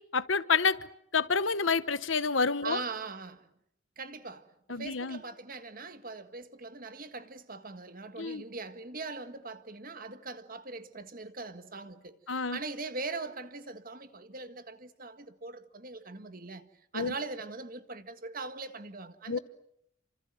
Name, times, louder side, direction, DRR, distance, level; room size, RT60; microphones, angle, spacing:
voice 1, 0.1-0.8 1.1-2.8 4.7-5.2 8.2-8.4 12.3-12.6 16.9-17.1 19.3-19.4, left 5 dB, 80° left, 1.1 m, -28 dB
voice 2, 2.6-3.5 4.0-19.4, right 3 dB, 45° right, 1.7 m, -41 dB
29.0 x 26.0 x 7.8 m
head